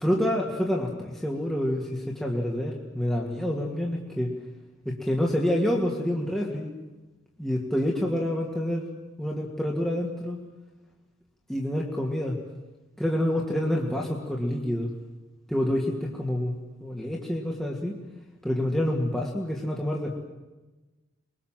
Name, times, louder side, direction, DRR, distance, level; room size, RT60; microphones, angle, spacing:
voice 1, 0.0-4.3 4.9-6.7 7.4-8.8 9.2-10.4 11.5-12.4 13.0-14.9 15.5-18.0 18.4-20.2, left 1 dB, ahead, -2 dB, 2.3 m, -27 dB
23.5 x 22.0 x 7.6 m, 1.2 s
head